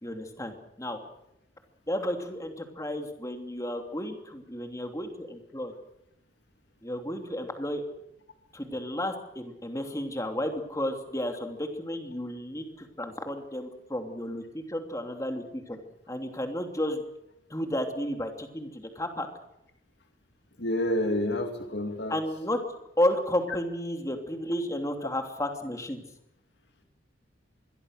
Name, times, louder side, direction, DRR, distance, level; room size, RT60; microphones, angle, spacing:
voice 1, 0.0-1.0 1.9-5.7 6.8-7.8 8.5-15.8 16.1-17.0 17.5-19.3 22.1-22.6 23.0-26.0, left 1 dB, 15° left, 5 dB, 2.9 m, -32 dB
voice 2, 20.6-22.2, left 1 dB, 60° left, 5 dB, 2.5 m, -28 dB
26.0 x 22.5 x 6.6 m, 0.84 s
head